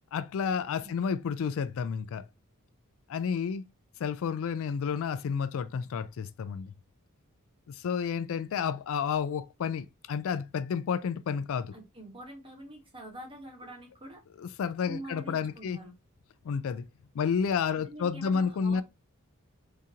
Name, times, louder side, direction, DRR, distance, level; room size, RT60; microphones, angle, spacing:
voice 1, 0.1-2.3 3.1-3.6 4.0-6.7 7.7-11.7 14.4-15.8 16.4-16.9 17.1-18.8, left 6 dB, 65° left, 0.3 m, -31 dB
voice 2, 11.7-14.2 14.9-15.9 17.7-18.8, right 1 dB, 25° right, 1.2 m, -45 dB
3.6 x 2.8 x 2.8 m
head